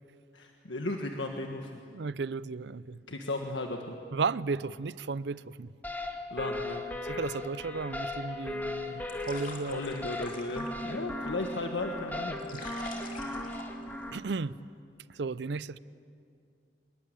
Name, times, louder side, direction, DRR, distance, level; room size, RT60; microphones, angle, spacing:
voice 1, 0.3-1.7 3.1-4.0 6.3-6.8 9.7-12.4, left 2 dB, 85° left, 1.6 m, -35 dB
voice 2, 1.9-3.0 4.1-5.7 7.1-9.8 12.5-12.6 14.1-14.6 15.1-15.8, right 4 dB, 65° right, 0.5 m, -34 dB
sound 1, 5.8-14.2, left 2 dB, 10° left, 1.9 m, -37 dB
sound 2, 8.5-14.5, left 3 dB, 50° left, 3.0 m, -48 dB
25.5 x 21.5 x 8.9 m
head